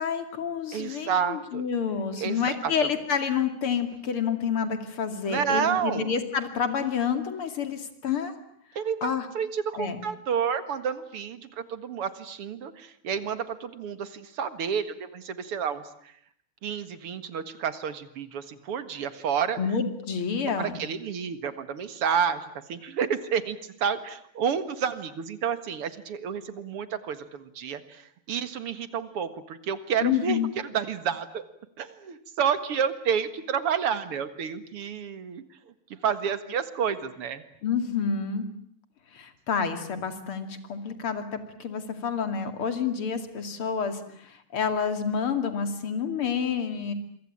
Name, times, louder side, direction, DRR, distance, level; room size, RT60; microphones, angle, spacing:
voice 1, 0.0-8.3 9.0-9.3 9.8-10.0 19.6-20.8 30.0-30.5 37.6-38.5 39.1-46.9, left 6 dB, 75° left, 8 dB, 3.4 m, -29 dB
voice 2, 0.7-1.7 2.2-2.7 5.3-6.1 8.8-16.1 16.6-19.6 20.6-31.4 31.8-35.4 36.0-37.4, right 7 dB, 85° right, 12 dB, 2.7 m, -30 dB
27.0 x 24.0 x 8.7 m, 0.69 s
omnidirectional pair, 2.4 m